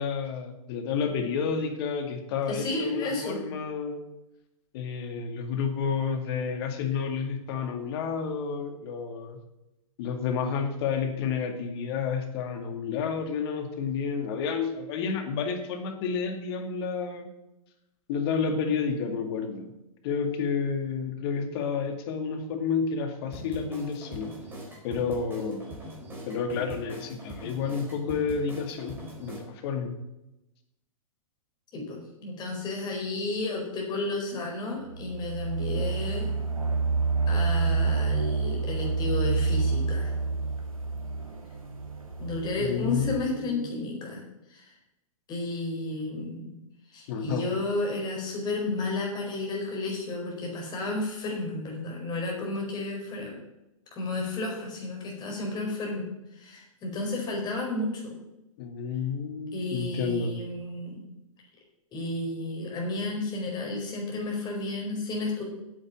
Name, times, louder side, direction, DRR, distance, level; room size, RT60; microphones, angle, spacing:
voice 1, 0.0-4.0 4.7-9.4 10.0-17.3 18.1-19.7 20.0-24.3 24.8-25.7 26.3-29.9 42.6-43.7 47.1-47.4 58.6-60.3, left 6 dB, 45° left, 6 dB, 2.2 m, -30 dB
voice 2, 2.5-3.4 31.7-36.3 37.3-40.1 42.2-44.2 44.5-44.7 45.3-46.5 46.9-53.3 53.9-56.0 56.3-58.1 59.5-61.0 61.9-65.4, left 2 dB, 25° left, -1 dB, 4.8 m, -32 dB
sound 1, 23.3-29.4, right 1 dB, 10° right, 4.1 m, -42 dB
sound 2, 34.9-43.2, right 4 dB, 85° right, 3.1 m, -28 dB
9.3 x 7.9 x 7.4 m, 0.91 s
hypercardioid pair, 120°, 18 cm